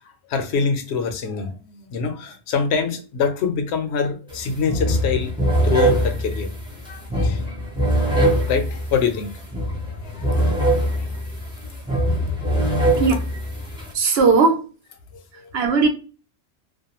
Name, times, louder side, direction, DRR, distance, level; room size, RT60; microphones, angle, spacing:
voice 1, 0.3-5.3 5.6-6.5 6.9-7.4 8.0-8.1 8.5-9.3 10.2-11.1 11.9-12.0 12.8-12.9 15.4-15.5, left 5 dB, 70° left, 0.8 m, -25 dB
sound 1, 4.3-4.4 4.7-13.9, right 1 dB, 5° right, 0.5 m, -22 dB
voice 2, 13.9-14.6 15.5-15.9, right 4 dB, 65° right, 0.8 m, -17 dB
2.5 x 2.2 x 2.8 m
omnidirectional pair, 1.2 m